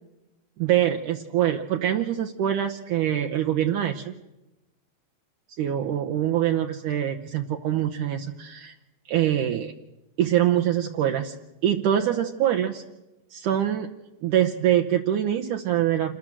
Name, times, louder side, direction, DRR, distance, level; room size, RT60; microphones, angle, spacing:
voice 1, 0.6-4.1 5.6-8.7 9.1-9.7 10.2-11.4 11.6-12.8 13.3-13.9 14.2-16.2, right 11 dB, 70° right, 4 dB, 2.3 m, -24 dB
28.0 x 19.5 x 7.5 m, 1.0 s
omnidirectional pair, 4.1 m